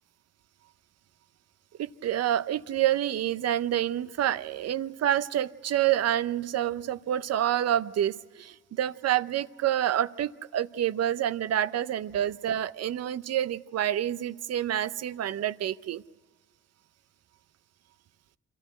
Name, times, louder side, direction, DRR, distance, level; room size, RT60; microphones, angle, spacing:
voice 1, 1.8-16.0, right 11 dB, 55° right, 0.6 m, -28 dB
26.0 x 13.5 x 7.9 m
cardioid pair, 90°, 30 cm